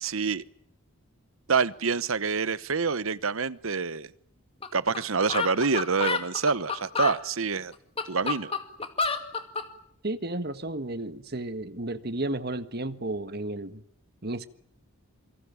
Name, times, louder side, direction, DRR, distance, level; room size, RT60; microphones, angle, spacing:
voice 1, 0.0-0.4 1.5-4.1 4.7-7.7 8.1-8.5, right 5 dB, 70° right, 1.0 m, -27 dB
sound 1, 4.6-4.7 4.9-5.0 5.3-7.2 7.7-9.7, left 5 dB, 25° left, 2.2 m, -29 dB
voice 2, 10.0-13.8 14.2-14.5, right 2 dB, 45° right, 1.6 m, -33 dB
28.0 x 24.5 x 7.1 m
head